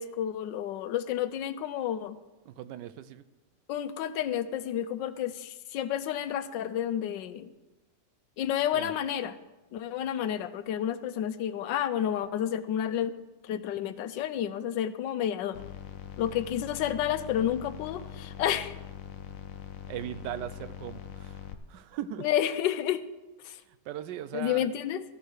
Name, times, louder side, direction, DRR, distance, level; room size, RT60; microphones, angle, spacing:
voice 1, 0.0-2.2 3.7-7.5 8.4-9.4 9.7-13.1 13.4-15.6 16.2-18.8 22.2-23.0 23.4-23.6 24.3-25.0, left 10 dB, 85° left, 13 dB, 1.4 m, -30 dB
voice 2, 2.5-3.2 8.7-8.9 19.9-21.4 21.7-22.2 23.9-24.7, right 11 dB, 80° right, 14 dB, 1.3 m, -38 dB
sound 1, 15.5-21.5, left 10 dB, 60° left, 1.0 m, -43 dB
14.0 x 6.8 x 6.4 m, 1.1 s
omnidirectional pair, 1.9 m